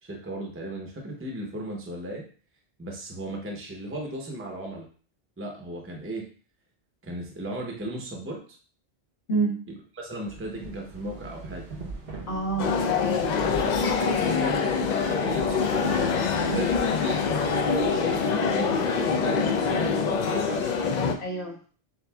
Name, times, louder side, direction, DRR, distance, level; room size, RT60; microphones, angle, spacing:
voice 1, 0.0-2.2 2.8-4.9 5.4-6.2 7.0-8.4 9.9-11.6 13.4-15.9 16.3-20.7, right 1 dB, 15° right, 0 dB, 0.7 m, -36 dB
voice 2, 9.3-9.6 12.3-13.4 16.4-16.6 21.2-21.6, right 3 dB, 85° left, -5 dB, 1.7 m, -29 dB
sound 1, 10.3-19.0, right 3 dB, 70° right, 1.1 m, -43 dB
sound 2, 12.6-21.1, left 5 dB, 55° left, 0.5 m, -25 dB
7.0 x 2.6 x 2.3 m, 0.40 s
omnidirectional pair, 1.0 m